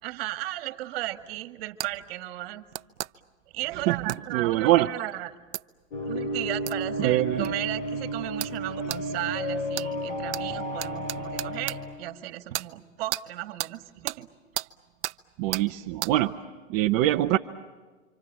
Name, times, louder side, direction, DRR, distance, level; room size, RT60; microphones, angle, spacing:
voice 1, 0.0-2.6 3.5-5.3 6.0-14.3, right 15 dB, 50° right, 10 dB, 1.9 m, -35 dB
sound 1, 1.8-1.9 2.7-3.1 4.1-4.2 5.5-5.6 6.7-6.8 7.4-7.5 8.4-8.6 8.9-9.0 9.7-9.9 10.3-10.4 10.8-11.8 12.5-12.7 13.1-13.2 13.6-13.7 14.1-14.2 14.5-14.7 15.0-15.2 15.5-15.7 16.0-16.1, right 14 dB, 65° right, 0.8 m, -32 dB
voice 2, 3.7-4.9 7.0-7.5 15.4-16.3 16.7-17.4, right 15 dB, 30° right, 3 dB, 0.8 m, -24 dB
sound 2, 5.9-12.0, equal, 65° left, 5.9 m, -32 dB
29.0 x 26.0 x 7.4 m, 1.4 s
hypercardioid pair, 140°, 38 cm